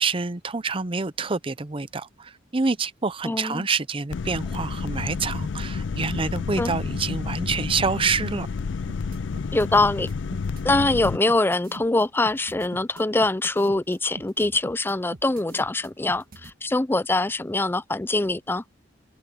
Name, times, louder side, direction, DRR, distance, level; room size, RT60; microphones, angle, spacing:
voice 1, 0.0-8.5, right 4 dB, 30° right, 0.7 m, -27 dB
voice 2, 3.2-3.7 6.6-6.8 9.5-10.1 10.6-18.6, left 2 dB, 10° left, 0.4 m, -23 dB
sound 1, 4.1-11.2, left 5 dB, 75° left, 0.4 m, -30 dB
sound 2, 8.9-16.5, right 1 dB, 50° right, 1.7 m, -42 dB
head